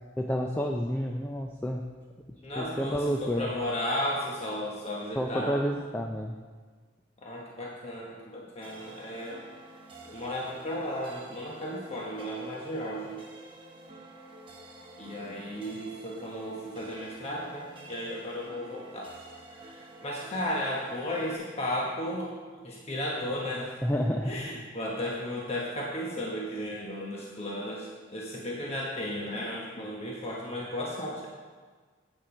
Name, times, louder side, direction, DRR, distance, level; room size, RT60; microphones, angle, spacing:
voice 1, 0.2-1.8 2.6-3.5 5.2-6.3 23.8-24.4, equal, 10° left, 2 dB, 0.4 m, -29 dB
voice 2, 2.4-5.6 7.2-9.4 10.0-13.2 15.0-19.1 19.6-23.8 24.2-31.3, left 1 dB, 30° left, -3 dB, 1.0 m, -34 dB
sound 1, 8.6-21.3, right 2 dB, 25° right, 1.0 m, -49 dB
8.6 x 7.5 x 5.1 m, 1.5 s
head